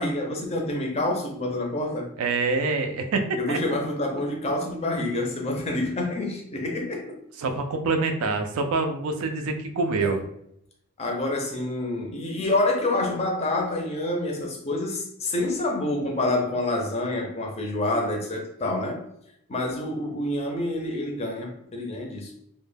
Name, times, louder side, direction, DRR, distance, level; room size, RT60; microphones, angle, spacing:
voice 1, 0.0-2.1 3.4-7.2 10.0-10.1 11.0-19.0 19.5-22.3, left 2 dB, 30° left, 0.4 m, -27 dB
voice 2, 2.2-3.6 7.4-10.2, right 3 dB, 70° right, 0.4 m, -26 dB
2.1 x 2.1 x 3.2 m
head